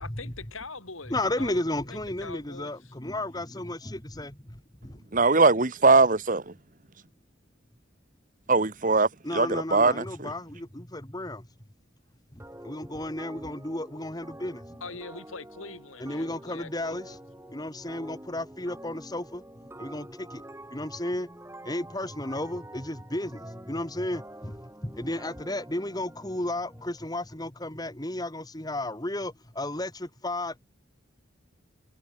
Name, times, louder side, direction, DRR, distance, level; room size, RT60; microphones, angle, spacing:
voice 1, 0.0-2.9 14.8-17.2, left 3 dB, 80° left, 5.1 m, -43 dB
voice 2, 1.1-4.3 4.8-4.9 9.2-11.4 12.6-14.6 16.0-17.2 17.5-19.4 19.8-20.4 20.7-21.3 21.7-24.5 24.8-30.7, left 1 dB, 20° left, 2.0 m, -33 dB
voice 3, 5.1-6.5 8.5-10.3, right 3 dB, 40° right, 1.2 m, -21 dB
sound 1, 12.4-27.0, right 1 dB, 10° right, 6.2 m, -47 dB
head